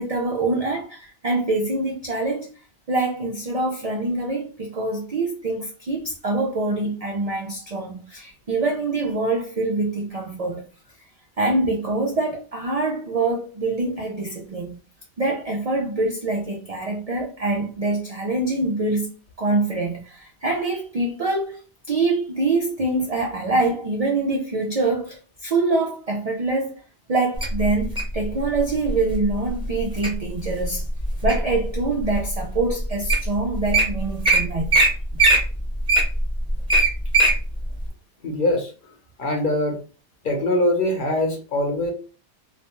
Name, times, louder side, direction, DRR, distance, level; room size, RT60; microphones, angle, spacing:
voice 1, 0.0-2.5 2.9-10.6 11.4-14.8 15.2-19.1 19.4-21.6 21.9-26.7 27.1-30.8 31.2-34.7, right 2 dB, 70° right, 0.3 m, -25 dB
Wild animals, 27.4-28.2 28.9-29.1 29.6-30.1 30.6-31.6 32.1-32.2 32.8-32.9 33.1-33.3 33.5-33.8 34.2-34.4 34.7-34.9 35.2-37.3 37.8-37.9, right 2 dB, 5° right, 0.7 m, -18 dB
voice 2, 38.2-38.7 39.2-39.8 40.2-41.9, left 1 dB, 50° left, 0.8 m, -22 dB
2.5 x 2.1 x 2.9 m
omnidirectional pair, 1.3 m